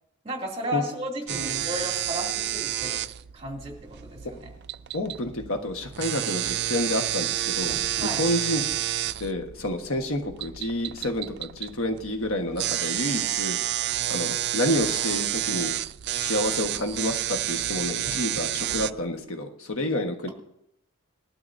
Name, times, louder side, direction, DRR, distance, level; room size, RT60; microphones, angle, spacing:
voice 1, 0.2-3.0 3.3-4.5 8.0-8.2, equal, 25° right, -1 dB, 2.5 m, -34 dB
voice 2, 1.3-1.7 4.9-7.7 8.0-8.6 9.2-13.6 14.1-15.7 16.1-20.3, left 1 dB, 75° left, 4 dB, 1.4 m, -29 dB
sound 1, 1.3-18.9, right 13 dB, 50° right, 0.3 m, -30 dB
sound 2, 7.5-8.7 9.6-9.7 9.9-10.3 10.6-10.8 11.3-11.4 11.8-12.1 13.2-13.8 15.8-16.7 17.7-19.3, right 1 dB, 45° left, 3.0 m, -45 dB
20.0 x 12.0 x 2.7 m, 0.78 s
head